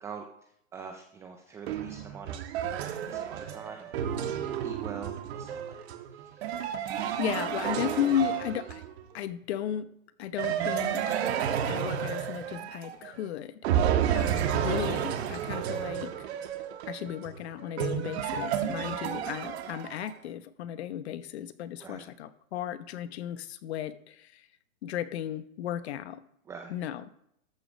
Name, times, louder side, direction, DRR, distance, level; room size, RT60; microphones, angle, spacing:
voice 1, 0.0-2.4 3.1-5.8 6.1-6.7 21.8-22.1 26.5-26.7, right 6 dB, 5° right, 5 dB, 0.4 m, -45 dB
sound 1, 1.7-9.1 10.4-13.2 13.6-20.1, right 9 dB, 55° right, 1.6 m, -31 dB
voice 2, 6.8-8.9 9.1-9.9 10.2-11.2 11.7-16.3 16.9-24.5 24.8-26.2 26.7-27.0, left 10 dB, 55° left, 13 dB, 1.0 m, -35 dB
13.5 x 5.0 x 6.2 m, 0.75 s
hypercardioid pair, 140°, 40 cm